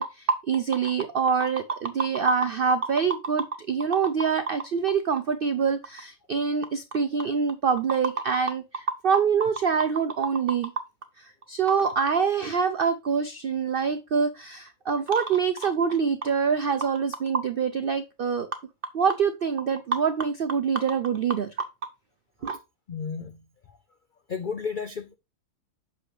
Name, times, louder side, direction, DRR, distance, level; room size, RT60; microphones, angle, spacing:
voice 1, 0.0-10.7 11.5-18.5 18.9-21.5 22.4-22.6, right 6 dB, 75° right, 0.5 m, -25 dB
voice 2, 22.9-23.4 24.3-25.2, left 6 dB, 80° left, 0.4 m, -32 dB
7.7 x 6.4 x 3.2 m
omnidirectional pair, 1.6 m